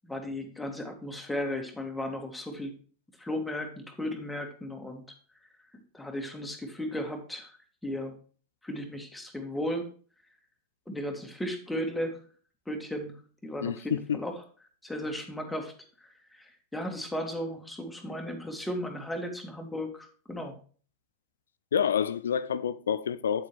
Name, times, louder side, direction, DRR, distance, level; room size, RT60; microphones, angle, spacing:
voice 1, 0.0-2.7 3.2-5.0 5.9-7.6 7.8-8.1 8.6-9.9 10.9-12.2 12.7-13.2 13.4-14.4 14.8-15.7 16.0-20.5, left 1 dB, 5° left, 1.9 m, -35 dB
voice 2, 13.6-14.2 21.7-23.5, left 8 dB, 65° left, 0.5 m, -28 dB
9.0 x 8.0 x 3.1 m
figure-of-eight pair, 90°, 0 cm